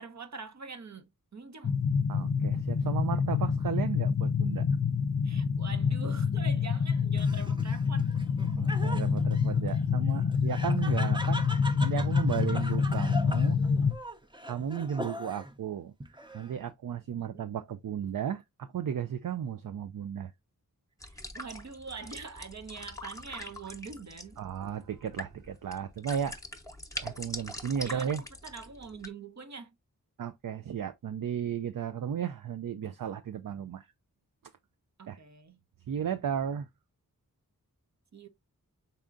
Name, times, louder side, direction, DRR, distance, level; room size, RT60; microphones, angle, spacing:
voice 1, 0.0-1.8 5.2-8.1 17.2-17.5 21.0-24.4 27.8-29.8 35.0-35.6 38.1-38.3, right 4 dB, 50° right, 0.9 m, -44 dB
sound 1, 1.6-13.9, left 6 dB, 50° left, 0.5 m, -27 dB
voice 2, 2.1-4.7 8.5-13.6 14.4-15.9 16.3-20.3 24.4-26.4 27.0-28.2 30.2-33.9 35.1-35.2 35.9-36.7, right 8 dB, 70° right, 0.5 m, -34 dB
Laughter, 7.2-15.6 16.0-16.7, equal, 15° right, 0.7 m, -41 dB
sound 2, 21.0-29.1, left 1 dB, 10° left, 0.9 m, -43 dB
5.5 x 3.6 x 2.5 m
wide cardioid pair, 70°, 34 cm